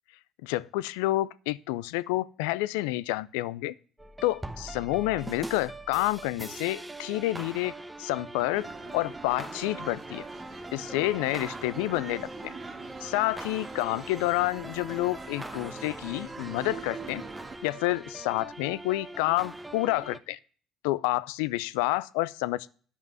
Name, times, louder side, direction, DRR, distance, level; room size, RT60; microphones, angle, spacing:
voice 1, 0.4-3.7 4.2-7.7 8.0-8.7 8.9-10.2 10.7-12.5 13.0-17.2 17.6-20.4 20.8-22.7, left 18 dB, 85° left, 0.4 m, -29 dB
sound 1, 4.0-20.2, right 1 dB, 10° right, 1.0 m, -42 dB
sound 2, 8.5-17.6, right 4 dB, 40° right, 2.1 m, -43 dB
9.8 x 5.4 x 7.5 m
hypercardioid pair, 65°, 0 cm